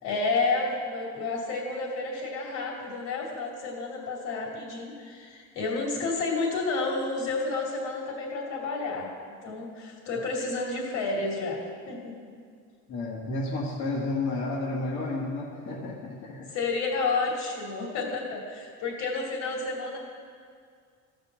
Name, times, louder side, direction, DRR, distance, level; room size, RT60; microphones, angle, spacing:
voice 1, 0.0-9.1 9.4-12.1 16.5-20.0, left 3 dB, 70° left, -1 dB, 2.8 m, -30 dB
voice 2, 12.9-16.5, left 2 dB, 45° left, -5 dB, 1.5 m, -31 dB
15.0 x 5.3 x 7.4 m, 2.1 s
cardioid pair, 175°, 30 cm